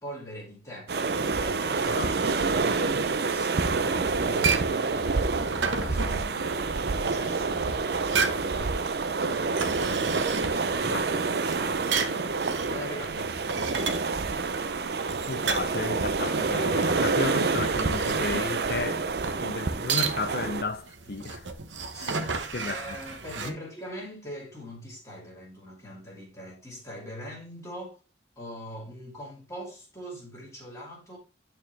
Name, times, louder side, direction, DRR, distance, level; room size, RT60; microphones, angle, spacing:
voice 1, 0.0-12.3 12.6-13.9 21.9-28.0 28.4-31.2, equal, 20° left, 2.1 m, -43 dB
sound 1, 0.9-20.6, right 4 dB, 60° right, 0.6 m, -28 dB
voice 2, 1.8-2.3 10.8-11.1 15.3-19.1 19.4-21.5 22.0-23.0 23.4-23.6, left 3 dB, 55° left, 0.6 m, -33 dB
sound 2, 4.2-23.5, right 5 dB, 85° right, 1.0 m, -33 dB
8.9 x 4.4 x 3.3 m
head